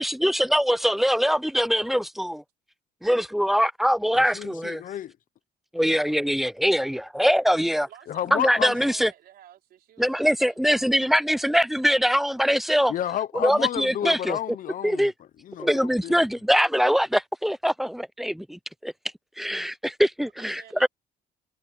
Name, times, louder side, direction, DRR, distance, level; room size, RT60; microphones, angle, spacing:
voice 1, 0.0-2.4 3.0-4.8 5.7-7.9 8.3-9.1 10.0-12.9 13.3-14.4 14.8-15.1 15.6-18.9 19.4-20.9, equal, ahead, 0.6 m, -23 dB
voice 2, 4.2-5.2 8.1-8.8 12.9-15.1 15.4-16.1, left 11 dB, 55° left, 0.9 m, -31 dB
voice 3, 7.9-11.4 20.4-20.9, right 11 dB, 65° right, 4.2 m, -52 dB
cardioid pair, 110°, 17 cm